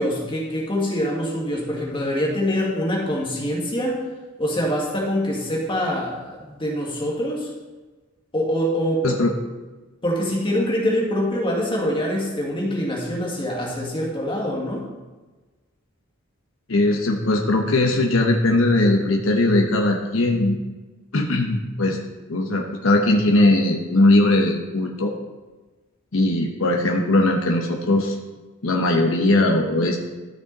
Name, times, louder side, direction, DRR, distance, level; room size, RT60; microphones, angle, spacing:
voice 1, 0.0-4.0 4.4-7.5 8.3-9.1 10.0-14.8, equal, 25° left, -2 dB, 2.0 m, -24 dB
voice 2, 16.7-20.6 21.1-22.0 22.3-25.1 26.1-28.1 28.6-30.0, left 2 dB, 85° left, 1 dB, 1.0 m, -19 dB
13.0 x 6.3 x 4.1 m, 1.2 s
head